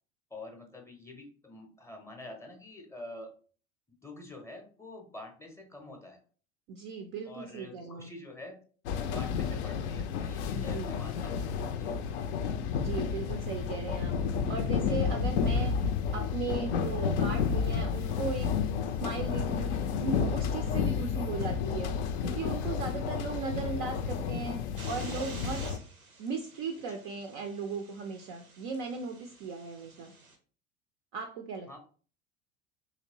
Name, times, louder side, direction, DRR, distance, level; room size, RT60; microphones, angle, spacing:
voice 1, 0.3-3.3 4.0-6.2 7.2-8.6 9.1-11.5 11.8-12.0 26.9-27.0 31.7-31.8, left 2 dB, 5° left, 2 dB, 0.6 m, -46 dB
voice 2, 6.7-8.1 10.5-10.9 12.7-15.7 16.1-18.5 18.9-19.7 20.0-21.9 22.2-25.6 26.2-30.1 31.1-31.8, right 4 dB, 35° right, 5 dB, 0.4 m, -37 dB
sound 1, 8.9-25.8, left 6 dB, 55° left, 0.5 m, -31 dB
sound 2, 24.8-30.4, right 3 dB, 90° right, 0.6 m, -49 dB
3.0 x 2.8 x 2.8 m, 0.41 s
figure-of-eight pair, 75°, 41 cm